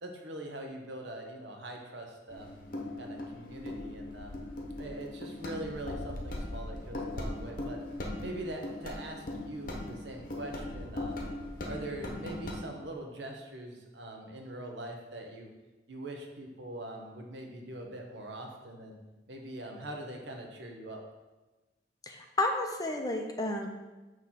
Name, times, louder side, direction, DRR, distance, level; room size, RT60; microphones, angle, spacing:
voice 1, 0.0-2.5 3.0-4.4 4.8-7.8 8.2-11.2 11.7-15.5 15.9-19.0 19.3-21.0, right 1 dB, 70° right, 2 dB, 0.9 m, -42 dB
sound 1, 2.3-12.6, left 1 dB, 50° left, 0.8 m, -39 dB
voice 2, 22.1-23.7, left 2 dB, 20° left, 3 dB, 0.5 m, -31 dB
6.4 x 3.0 x 5.7 m, 1.1 s
head